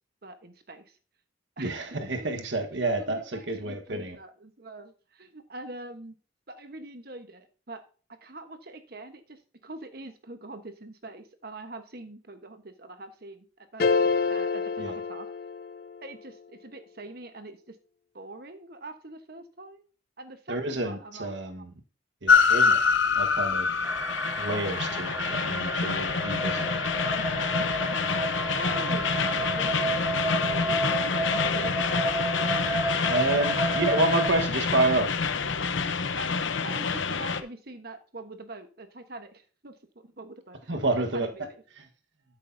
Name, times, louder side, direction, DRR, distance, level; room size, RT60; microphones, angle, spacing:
voice 1, 0.2-1.0 1.6-1.7 2.2-2.3 2.7-6.1 6.5-7.8 8.1-13.9 14.3-15.3 16.0-17.8 18.1-19.8 20.2-21.4 22.5-22.6 28.3-30.0 30.3-32.2 33.0-33.8 36.2-39.7 40.0-41.6, right 2 dB, 50° right, 8 dB, 1.2 m, -44 dB
voice 2, 1.6-4.1 14.8-15.0 20.5-21.6 22.2-22.8 23.1-23.7 24.4-26.7 33.1-35.1 40.7-41.3, right 2 dB, 70° right, 5 dB, 1.4 m, -28 dB
sound 1, 13.8-16.1, left 4 dB, 50° left, 0.5 m, -27 dB
Train, 22.3-37.4, left 5 dB, 80° left, 0.8 m, -26 dB
sound 2, 23.8-34.3, right 2 dB, 10° right, 0.3 m, -32 dB
12.5 x 6.6 x 2.7 m, 0.38 s
head